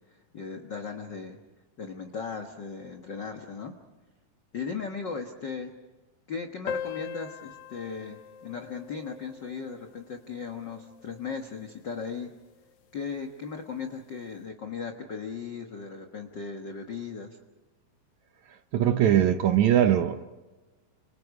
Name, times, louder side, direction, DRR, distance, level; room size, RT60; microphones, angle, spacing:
voice 1, 0.1-1.4 1.8-3.7 4.5-5.7 6.3-12.3 12.9-17.4, left 5 dB, 50° left, 1.4 m, -37 dB
sound 1, 6.7-11.6, left 7 dB, 85° left, 1.3 m, -41 dB
voice 2, 18.7-20.2, right 10 dB, 70° right, 1.9 m, -21 dB
30.0 x 27.5 x 4.9 m
omnidirectional pair, 4.0 m